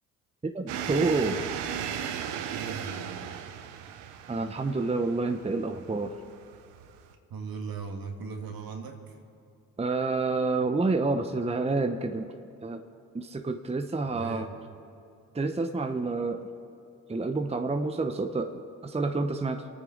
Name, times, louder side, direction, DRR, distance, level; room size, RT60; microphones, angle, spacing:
voice 1, 0.4-1.4 4.3-6.1 9.8-12.3 12.6-12.8 13.1-14.5 15.3-16.4 17.1-19.7, right 3 dB, 15° right, 6 dB, 0.9 m, -28 dB
sound 1, 0.7-7.1, right 9 dB, 80° right, 0.9 m, -37 dB
voice 2, 2.4-3.4 7.3-9.2 14.0-14.5, right 5 dB, 60° right, 4 dB, 1.8 m, -38 dB
25.0 x 9.4 x 3.9 m, 2.7 s
supercardioid pair, 55°, 41 cm